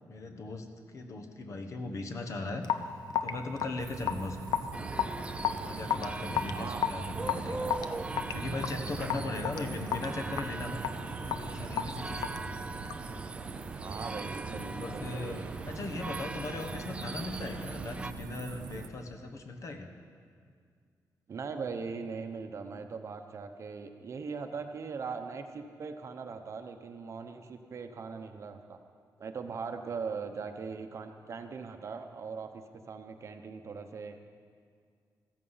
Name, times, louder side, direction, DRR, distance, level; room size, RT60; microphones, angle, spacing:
voice 1, 0.1-2.6 3.2-4.6 5.6-7.8 8.3-10.8 11.2-12.4 14.4-19.9, left 2 dB, 50° left, 5 dB, 1.2 m, -39 dB
Raindrop / Drip, 2.6-13.1, left 8 dB, 90° left, 0.7 m, -34 dB
sound 1, 3.8-18.9, right 6 dB, 85° right, 0.9 m, -43 dB
sound 2, 4.7-18.1, right 3 dB, 15° right, 0.4 m, -40 dB
voice 2, 13.8-15.5 21.3-28.8 29.2-34.2, right 5 dB, 45° right, 7 dB, 0.9 m, -40 dB
14.5 x 14.0 x 5.7 m, 2.1 s
wide cardioid pair, 165°, 7 cm